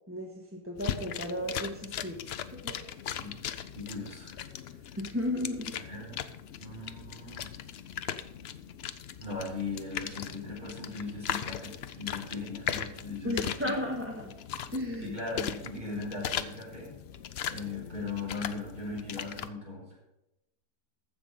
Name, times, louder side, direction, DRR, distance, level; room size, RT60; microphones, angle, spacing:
voice 1, 0.1-2.2 2.5-2.8 5.0-5.8 13.2-14.3 14.7-15.1, left 1 dB, 10° right, -1 dB, 1.3 m, -34 dB
sound 1, 0.8-19.5, left 9 dB, 75° left, 0.5 m, -39 dB
voice 2, 3.7-4.4 4.8-5.0 5.8-6.2 6.6-7.5 9.2-13.8 15.0-16.9 17.5-19.9, left 3 dB, 30° right, -4 dB, 5.1 m, -39 dB
14.5 x 6.2 x 5.3 m, 0.90 s
omnidirectional pair, 1.8 m